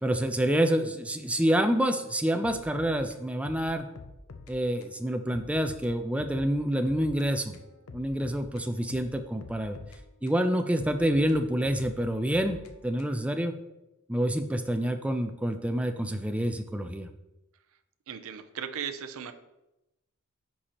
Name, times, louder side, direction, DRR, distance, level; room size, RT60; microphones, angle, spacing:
voice 1, 0.0-3.9 4.5-7.6 7.9-9.8 10.2-13.6 14.1-17.1, right 1 dB, 5° right, 7 dB, 0.4 m, -27 dB
sound 1, 2.4-4.6 4.8-5.0 5.3-7.3 7.5-10.4 10.8-13.3, left 3 dB, 75° left, 0.6 m, -47 dB
voice 2, 18.1-19.3, right 7 dB, 65° right, 9 dB, 0.5 m, -37 dB
9.9 x 4.2 x 3.0 m, 0.95 s
head